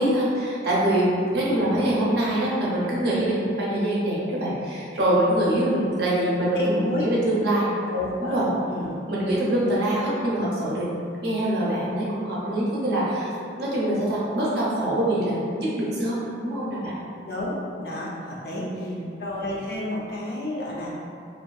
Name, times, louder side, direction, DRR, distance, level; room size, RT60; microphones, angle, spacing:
voice 1, 0.0-7.7 8.2-8.5 9.1-13.3 13.6-17.0 18.5-19.2, right 1 dB, 60° right, -7 dB, 0.6 m, -24 dB
voice 2, 6.5-7.1 7.9-8.9 17.3-21.0, left 1 dB, 55° left, -5 dB, 0.4 m, -31 dB
2.6 x 2.4 x 2.2 m, 2.4 s
head